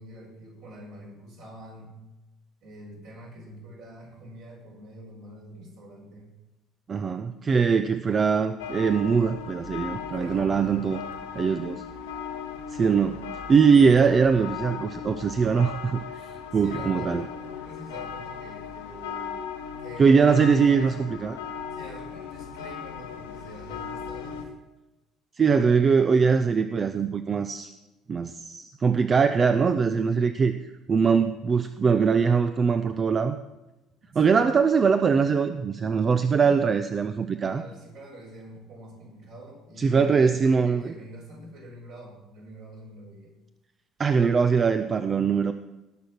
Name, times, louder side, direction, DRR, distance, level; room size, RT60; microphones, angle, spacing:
voice 1, 0.0-1.9 2.6-6.4 10.1-11.0 16.1-19.4 19.8-20.2 20.5-21.3 21.7-24.5 34.0-34.4 36.3-36.6 37.5-43.3, right 1 dB, 65° right, -3 dB, 5.4 m, -45 dB
voice 2, 6.9-11.0 11.4-11.8 12.7-16.0 16.5-17.3 20.0-21.4 25.4-27.7 28.1-30.5 30.9-33.4 34.1-37.6 39.8-40.9 44.0-45.5, right 5 dB, 35° right, 10 dB, 0.6 m, -22 dB
sound 1, 8.6-24.5, left 7 dB, 75° left, 1.3 m, -37 dB
18.0 x 6.4 x 6.1 m, 1.0 s
figure-of-eight pair, 55°, 0 cm